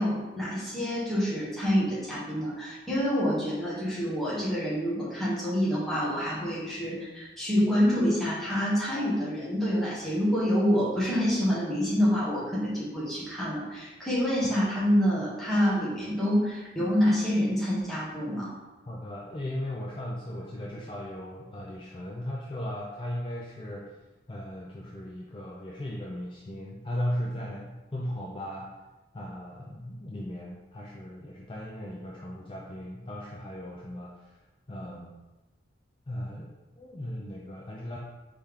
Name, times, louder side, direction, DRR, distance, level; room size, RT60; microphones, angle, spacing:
voice 1, 0.0-18.5, equal, ahead, -9 dB, 1.3 m, -27 dB
voice 2, 18.9-24.0 24.3-28.7 29.1-35.1 36.1-38.0, left 1 dB, 30° left, -3 dB, 0.4 m, -37 dB
4.3 x 3.4 x 3.6 m, 1.1 s
head